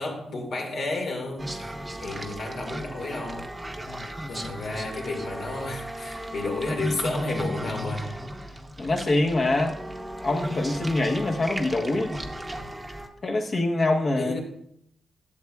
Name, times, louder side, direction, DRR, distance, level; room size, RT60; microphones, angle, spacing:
voice 1, 0.0-1.7 2.0-3.5 4.3-8.1 14.2-14.4, left 2 dB, 70° left, 1.9 m, -32 dB
sound 1, 1.4-13.1, equal, 15° right, 0.9 m, -35 dB
voice 2, 8.8-9.8 10.2-12.2 13.2-14.4, left 2 dB, 45° left, 1.1 m, -24 dB
11.0 x 7.2 x 2.4 m
cardioid pair, 75°, 0 cm